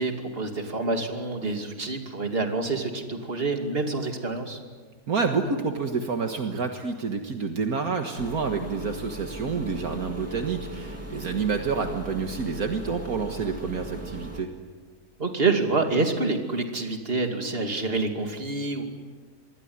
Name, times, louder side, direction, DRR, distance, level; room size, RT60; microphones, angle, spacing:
voice 1, 0.0-4.6 15.2-18.8, right 3 dB, 35° right, 4 dB, 2.8 m, -27 dB
voice 2, 5.1-14.5, right 5 dB, 70° right, 5 dB, 2.0 m, -28 dB
sound 1, 8.2-14.4, right 1 dB, 10° right, 2.4 m, -38 dB
26.5 x 21.5 x 9.7 m, 1.5 s
omnidirectional pair, 1.6 m